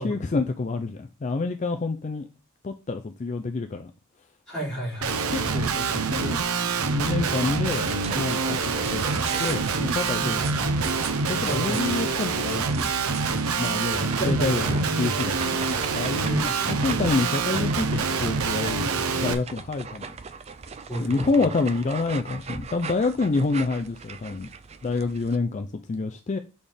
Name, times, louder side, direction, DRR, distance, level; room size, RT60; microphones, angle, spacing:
voice 1, 0.0-2.3 2.6-3.9 5.3-6.4 6.9-10.7 11.2-12.8 13.6-15.6 15.9-18.9 19.2-20.1 21.0-24.5 24.8-26.4, left 3 dB, 35° left, 0.4 m, -28 dB
voice 2, 4.5-5.4 10.2-10.9 11.5-11.8 14.2-14.8 16.3-16.9 20.9-21.3, right 1 dB, 5° left, 3.3 m, -32 dB
Guitar, 5.0-19.3, right 4 dB, 90° right, 0.7 m, -26 dB
sound 1, 7.7-25.4, right 5 dB, 30° right, 0.4 m, -40 dB
7.3 x 4.2 x 3.4 m
head